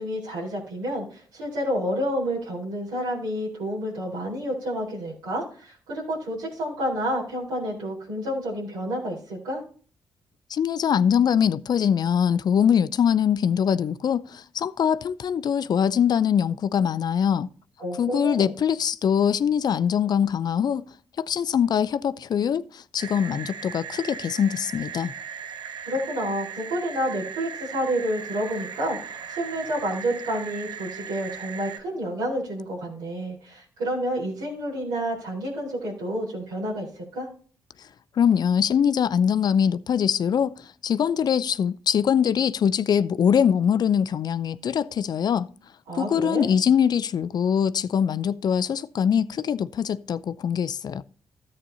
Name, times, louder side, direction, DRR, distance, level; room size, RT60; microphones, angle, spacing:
voice 1, 0.0-9.6 17.8-18.5 25.8-37.3 45.9-46.5, equal, 90° right, 4.2 m, -29 dB
voice 2, 10.5-17.5 18.0-20.9 21.2-25.1 38.2-40.6 40.8-45.5 45.9-51.0, left 8 dB, 60° left, 0.5 m, -23 dB
sound 1, 23.0-31.8, right 7 dB, 70° right, 1.0 m, -38 dB
13.5 x 8.5 x 2.8 m
hypercardioid pair, 45°, 8 cm